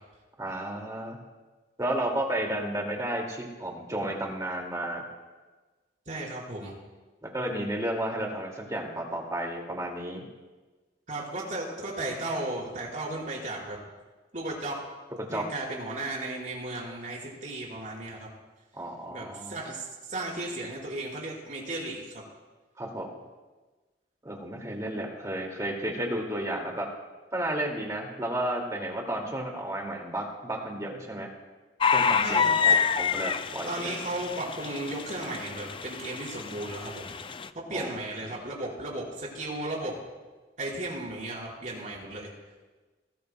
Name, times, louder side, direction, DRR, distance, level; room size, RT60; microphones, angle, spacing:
voice 1, 0.4-1.2 1.8-5.0 7.3-10.3 15.2-15.4 18.7-19.5 22.8-23.1 24.2-26.9 27.3-31.3 31.9-34.0 37.7-37.9, right 1 dB, 20° right, 0 dB, 2.2 m, -32 dB
voice 2, 6.1-6.8 11.1-13.8 14.3-14.8 15.3-18.3 19.1-22.2 32.2-32.8 33.7-37.1 37.7-40.0 40.6-42.3, right 2 dB, 45° right, -3 dB, 4.5 m, -35 dB
sound 1, 31.8-37.5, left 6 dB, 30° left, 0.4 m, -28 dB
20.0 x 18.0 x 2.2 m, 1.2 s
head